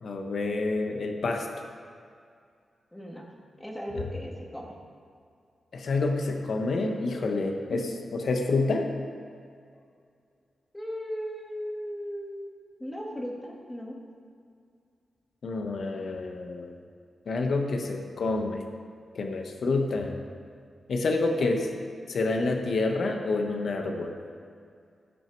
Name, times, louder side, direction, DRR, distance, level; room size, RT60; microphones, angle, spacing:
voice 1, 0.0-1.5 3.9-4.0 5.7-8.9 15.4-16.7 17.3-18.6 19.1-20.1 20.9-21.6 22.1-24.1, left 3 dB, 65° left, 3 dB, 1.1 m, -28 dB
voice 2, 2.9-3.2 3.6-4.7 7.5-7.9 10.7-12.5 12.8-14.0 21.4-21.5, equal, 10° left, -1 dB, 1.8 m, -37 dB
16.5 x 6.3 x 4.6 m, 2.3 s
wide cardioid pair, 125°, 0 cm